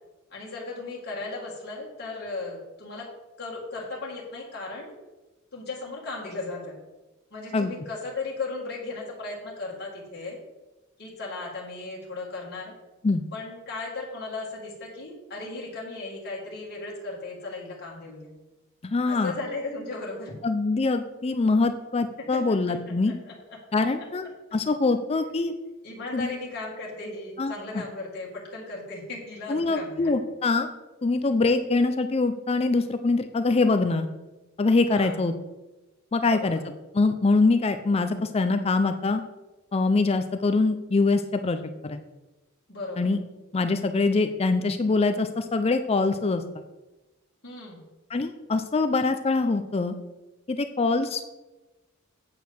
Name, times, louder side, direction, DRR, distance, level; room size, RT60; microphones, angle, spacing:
voice 1, 0.3-3.1 3.4-4.9 5.5-6.8 7.3-10.4 11.0-12.7 13.3-18.3 19.1-20.4 23.3-23.8 25.8-30.1 34.9-35.2 36.2-36.6 42.7-43.1 47.4-47.8, left 3 dB, 45° left, -3 dB, 2.0 m, -36 dB
voice 2, 18.8-19.3 20.4-23.1 23.7-24.2 24.5-25.5 26.1-26.3 27.4-27.5 29.5-30.7 31.0-34.1 34.6-35.3 36.1-36.6 36.9-39.2 39.7-42.0 43.0-43.2 43.5-46.4 48.1-49.9 50.5-51.2, left 3 dB, 25° left, 9 dB, 0.4 m, -24 dB
8.3 x 4.6 x 6.9 m, 1.1 s
head